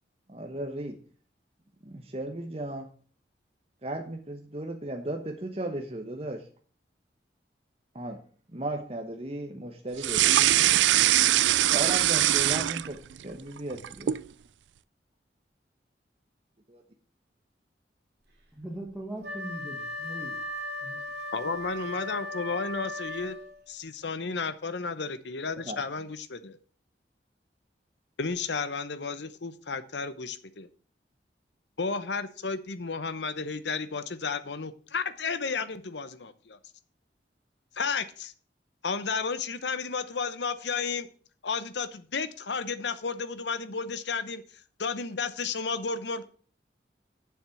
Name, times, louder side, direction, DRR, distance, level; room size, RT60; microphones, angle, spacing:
voice 1, 0.3-0.9 1.8-2.9 3.8-6.4 7.9-8.2 8.5-10.5 11.7-13.8 16.7-16.8 25.7-25.8, right 1 dB, 35° right, 1.0 m, -35 dB
sound 1, 10.0-13.2 13.6-14.3, right 13 dB, 85° right, 0.4 m, -22 dB
voice 2, 18.5-20.4 20.8-21.0, right 1 dB, 5° right, 1.7 m, -40 dB
Wind instrument woodwind instrument, 19.2-23.7, left 1 dB, 70° right, 2.4 m, -37 dB
voice 3, 21.3-23.4 23.7-26.6 28.2-30.7 31.8-36.6 37.8-38.3 38.8-41.1 41.4-44.4 44.8-46.2, left 4 dB, 75° left, 0.9 m, -32 dB
7.3 x 7.3 x 7.1 m
head